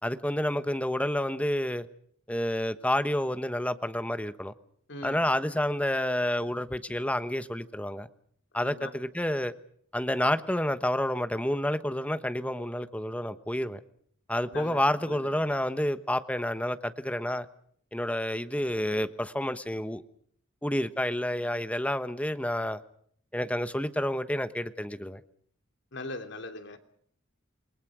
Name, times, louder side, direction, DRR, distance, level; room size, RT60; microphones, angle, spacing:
voice 1, 0.0-1.9 2.3-4.5 5.0-8.1 8.5-9.5 9.9-13.8 14.3-17.5 17.9-20.0 20.6-22.8 23.3-25.2, left 1 dB, 5° left, 11 dB, 1.2 m, -29 dB
voice 2, 4.9-5.3 8.5-8.9 14.5-15.2 25.9-26.8, left 2 dB, 60° left, 6 dB, 3.0 m, -40 dB
28.0 x 22.0 x 6.2 m, 0.62 s
head